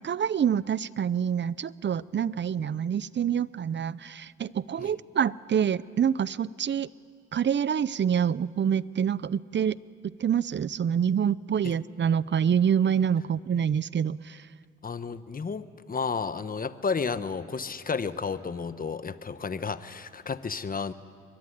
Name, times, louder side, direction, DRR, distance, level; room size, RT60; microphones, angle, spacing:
voice 1, 0.0-6.9 7.3-9.8 10.2-14.4, right 8 dB, 40° right, 19 dB, 0.6 m, -26 dB
voice 2, 14.8-20.9, left 5 dB, 30° left, 12 dB, 1.1 m, -32 dB
23.5 x 22.5 x 9.9 m, 2.2 s
cardioid pair, 90°, 30 cm